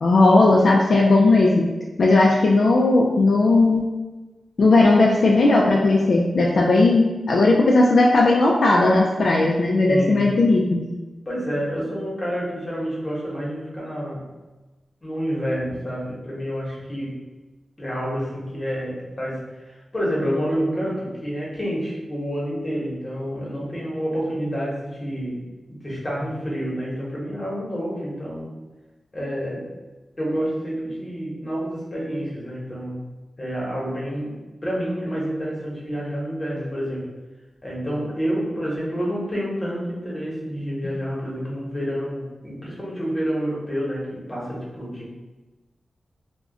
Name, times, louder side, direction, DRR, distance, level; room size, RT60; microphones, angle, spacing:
voice 1, 0.0-1.7 2.0-3.8 4.6-10.8, left 2 dB, 65° left, -2 dB, 0.3 m, -17 dB
voice 2, 9.9-10.5 11.3-14.3 15.0-17.2 17.8-25.4 25.7-28.5 29.1-29.7 30.2-33.0 33.4-37.1 37.6-45.1, equal, 25° left, -5 dB, 0.9 m, -28 dB
2.4 x 2.1 x 3.7 m, 1.2 s
wide cardioid pair, 110°, 0 cm